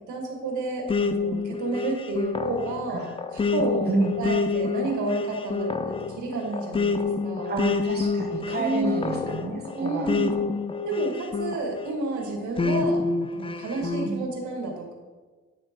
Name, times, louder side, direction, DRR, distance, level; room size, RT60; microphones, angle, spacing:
voice 1, 0.1-3.0 3.3-7.5 8.6-9.1 9.7-10.3 10.9-13.0 13.3-14.9, right 2 dB, 75° right, 0 dB, 1.9 m, -30 dB
sound 1, 0.9-11.9 12.6-14.1, left 4 dB, 20° left, 0.4 m, -28 dB
voice 2, 7.4-10.1 14.0-14.3, right 3 dB, 35° right, -1 dB, 1.2 m, -30 dB
9.3 x 3.2 x 5.9 m, 1.3 s
cardioid pair, 90°, 30 cm